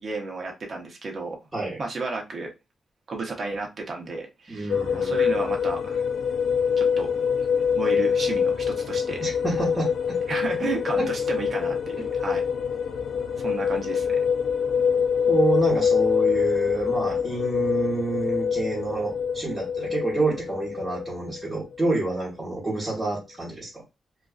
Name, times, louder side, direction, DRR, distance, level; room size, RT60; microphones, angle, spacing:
voice 1, 0.0-1.4 1.8-2.5 3.1-6.0 6.8-7.1 7.7-9.2 10.3-12.4 13.4-14.2, right 3 dB, 45° right, 0.7 m, -32 dB
voice 2, 4.5-5.3 9.2-10.2 11.0-11.1 15.3-23.8, right 3 dB, 15° right, 1.1 m, -28 dB
sound 1, 4.7-21.9, left 6 dB, 85° left, 0.3 m, -25 dB
2.4 x 2.3 x 2.3 m
wide cardioid pair, 120°, 0 cm